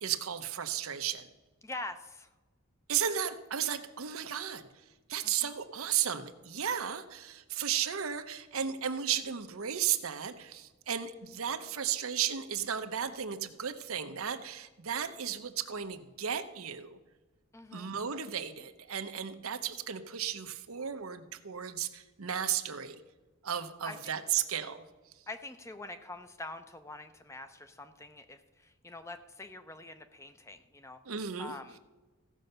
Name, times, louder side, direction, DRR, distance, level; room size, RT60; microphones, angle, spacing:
voice 1, 0.0-1.3 2.9-4.7 5.1-17.0 17.7-23.0 23.4-24.8 31.1-31.5, right 9 dB, 90° right, 9 dB, 0.8 m, -34 dB
voice 2, 1.6-2.3 5.2-5.5 17.5-17.9 23.8-24.4 25.3-31.8, left 2 dB, 15° left, 9 dB, 0.6 m, -45 dB
15.5 x 5.4 x 6.7 m, 1.2 s
head